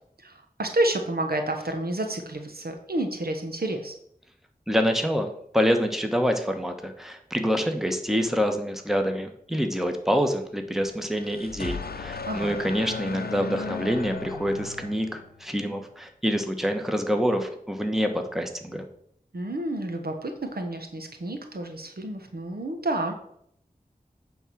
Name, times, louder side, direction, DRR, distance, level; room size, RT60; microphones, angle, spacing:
voice 1, 0.2-3.9 12.3-12.5 19.3-23.1, right 1 dB, 80° right, 5 dB, 1.1 m, -30 dB
voice 2, 4.7-18.8, equal, ahead, 5 dB, 1.1 m, -26 dB
sound 1, 10.9-15.5, left 5 dB, 85° left, 0.6 m, -36 dB
9.0 x 3.8 x 6.0 m, 0.68 s
wide cardioid pair, 55°, 16 cm